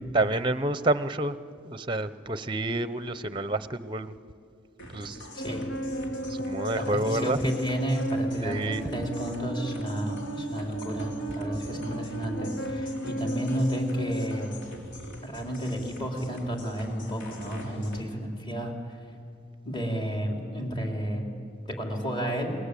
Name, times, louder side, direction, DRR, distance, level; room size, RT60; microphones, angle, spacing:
voice 1, 0.1-1.3 1.6-4.1 4.9-5.2 6.4-7.4 8.4-8.8, right 2 dB, 25° right, 13 dB, 0.7 m, -28 dB
sound 1, 4.8-18.0, left 1 dB, 70° left, 3.5 m, -46 dB
voice 2, 5.3-5.7 6.7-14.6 15.2-19.0 19.7-21.3 21.7-22.6, equal, 25° left, 1 dB, 3.9 m, -32 dB
sound 2, 5.4-14.5, right 1 dB, 90° left, 4.1 m, -34 dB
29.0 x 21.5 x 8.4 m, 2.3 s
head